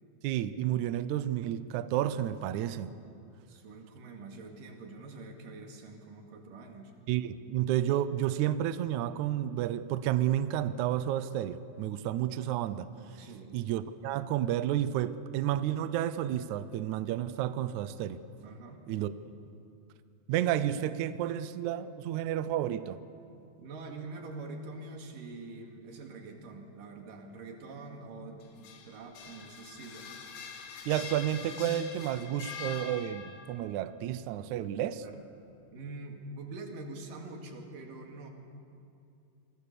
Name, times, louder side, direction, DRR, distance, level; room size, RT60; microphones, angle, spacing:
voice 1, 0.2-2.9 7.1-12.9 13.5-18.2 18.9-19.1 20.3-23.0 30.9-35.0, right 11 dB, 85° right, 13 dB, 1.7 m, -31 dB
voice 2, 3.5-6.9 13.2-13.6 18.4-18.8 23.6-30.1 35.0-35.2 35.7-38.3, right 3 dB, 65° right, 2 dB, 3.8 m, -45 dB
Metallic Pipe Rolling on Concrete in Basement, 28.4-33.6, left 6 dB, 85° left, 3.8 m, -44 dB
28.0 x 23.0 x 6.8 m, 2.6 s
omnidirectional pair, 4.3 m